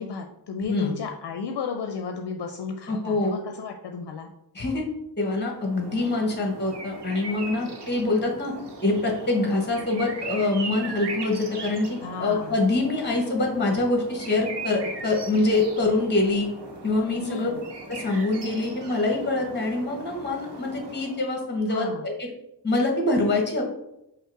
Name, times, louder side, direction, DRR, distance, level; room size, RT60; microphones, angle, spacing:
voice 1, 0.0-4.3 12.0-12.6 17.2-17.6 21.7-22.0, left 5 dB, 70° left, 4 dB, 0.5 m, -33 dB
voice 2, 2.9-3.4 4.5-4.8 5.2-8.5 8.8-16.5 16.8-17.5 17.9-22.3 22.6-23.7, left 2 dB, 25° left, 1 dB, 1.0 m, -25 dB
sound 1, 5.5-21.4, right 3 dB, 75° right, 0.9 m, -39 dB
5.3 x 2.1 x 4.6 m, 0.86 s
wide cardioid pair, 90°, 41 cm